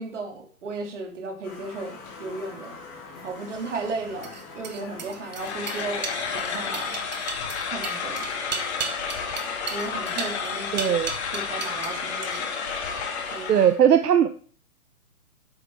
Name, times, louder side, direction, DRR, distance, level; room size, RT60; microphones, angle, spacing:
voice 1, 0.0-2.7 3.2-6.9 7.7-8.3 9.7-10.9 11.3-12.5 13.3-13.7, right 3 dB, 50° right, 2 dB, 2.8 m, -35 dB
sound 1, 1.4-6.8, left 4 dB, 10° left, 0.8 m, -43 dB
sound 2, 3.4-11.9 12.2-12.7, right 6 dB, 30° right, 0.7 m, -36 dB
sound 3, 5.3-13.8, left 5 dB, 45° left, 2.1 m, -31 dB
voice 2, 10.7-11.1 13.5-14.4, right 9 dB, 80° right, 10 dB, 0.9 m, -19 dB
10.0 x 8.1 x 3.5 m, 0.43 s
hypercardioid pair, 160°, 46 cm